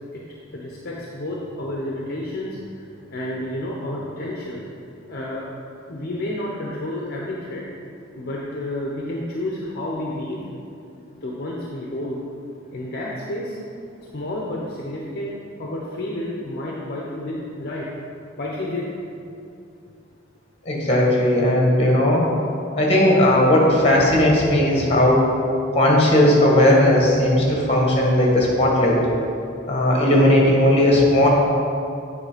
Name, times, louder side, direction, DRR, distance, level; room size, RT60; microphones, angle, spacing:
voice 1, 0.5-2.6 3.1-4.6 5.1-5.5 5.9-7.7 8.1-10.4 11.0-12.2 12.7-13.6 14.1-15.3 15.6-17.9 18.4-18.9, left 1 dB, 50° left, -3 dB, 0.8 m, -30 dB
voice 2, 20.7-22.2 22.7-25.2 25.7-29.0 29.7-31.3, left 1 dB, 30° left, -2 dB, 1.6 m, -17 dB
8.8 x 4.3 x 5.1 m, 2.6 s
head